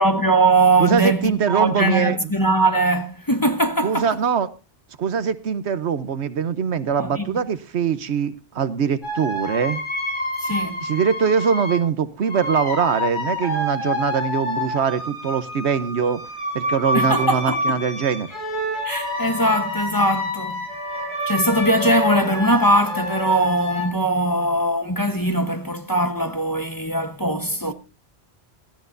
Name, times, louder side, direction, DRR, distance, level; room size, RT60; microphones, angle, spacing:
voice 1, 0.0-4.1 7.0-7.3 10.4-10.8 16.9-17.8 18.8-20.6 21.3-27.7, right 1 dB, 20° left, 1.0 m, -21 dB
voice 2, 0.8-2.2 3.8-4.5 5.0-9.8 10.8-16.2 16.5-18.3, right 7 dB, 70° right, 1.1 m, -22 dB
sound 1, 9.0-11.8 12.2-23.9, left 1 dB, 45° left, 5.5 m, -28 dB
18.0 x 13.5 x 2.6 m
omnidirectional pair, 1.2 m